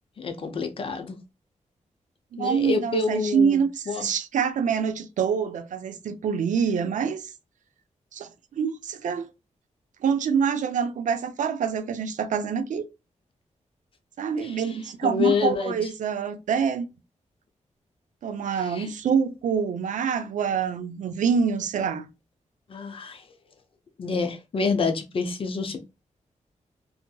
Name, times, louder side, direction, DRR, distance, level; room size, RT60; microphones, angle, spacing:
voice 1, 0.2-1.2 2.4-3.6 3.9-4.1 14.4-14.8 15.0-15.8 18.6-18.9 22.7-23.2 24.0-25.8, left 4 dB, 45° left, 0.5 m, -27 dB
voice 2, 2.3-7.3 8.1-8.3 8.6-9.3 10.0-12.8 14.2-16.9 18.2-22.1, right 6 dB, 90° right, 0.4 m, -26 dB
2.7 x 2.5 x 2.2 m
wide cardioid pair, 135°, 13 cm